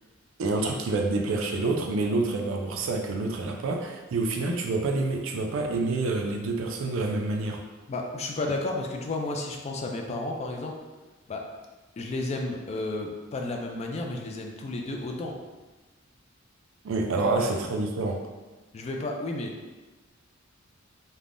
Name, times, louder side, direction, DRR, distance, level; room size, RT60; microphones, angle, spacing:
voice 1, 0.4-7.6 16.8-18.2, right 3 dB, 70° right, 2 dB, 0.4 m, -27 dB
voice 2, 7.9-10.8 11.3-11.4 12.0-15.4 18.7-19.5, left 2 dB, 30° left, 2 dB, 0.3 m, -32 dB
3.4 x 2.1 x 2.5 m, 1.2 s
head